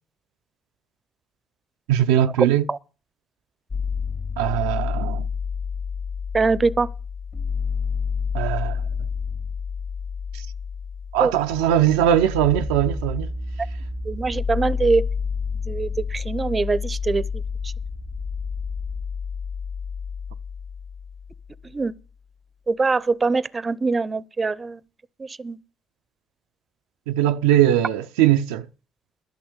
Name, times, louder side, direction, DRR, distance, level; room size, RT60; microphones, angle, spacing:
voice 1, 1.9-2.7 4.4-5.3 8.3-8.8 10.3-10.4 11.1-13.3 27.1-28.7, right 11 dB, 90° right, 0.5 m, -20 dB
sound 1, 3.7-21.7, left 5 dB, 45° left, 2.6 m, -29 dB
voice 2, 6.3-6.9 11.2-11.3 14.1-15.1 15.7-17.2 17.6-17.7 21.7-21.9 22.7-24.8 25.2-25.6, right 4 dB, 30° right, 0.6 m, -23 dB
11.5 x 6.0 x 8.9 m
supercardioid pair, 60°, 0 cm